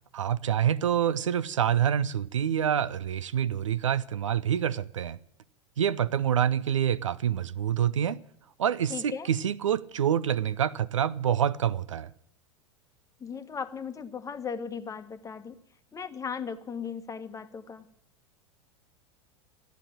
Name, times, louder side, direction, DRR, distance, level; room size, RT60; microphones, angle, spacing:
voice 1, 0.1-5.2 5.8-8.2 8.6-12.1, right 9 dB, 75° right, 0.6 m, -27 dB
voice 2, 8.9-9.3 13.2-15.6 15.9-17.9, left 6 dB, 20° left, 1.2 m, -37 dB
14.5 x 10.5 x 8.9 m
figure-of-eight pair, 85°, 16 cm